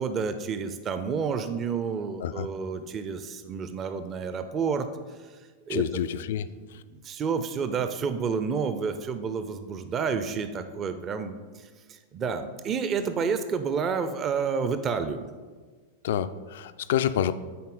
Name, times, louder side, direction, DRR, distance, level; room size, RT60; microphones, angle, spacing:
voice 1, 0.0-4.9 5.7-5.8 7.0-11.3 12.1-15.3, right 6 dB, 30° right, 10 dB, 0.5 m, -29 dB
voice 2, 5.7-6.5 6.7-6.8 16.0-17.3, left 10 dB, 60° left, 13 dB, 0.3 m, -28 dB
9.3 x 4.2 x 3.9 m, 1.5 s
figure-of-eight pair, 95°, 0 cm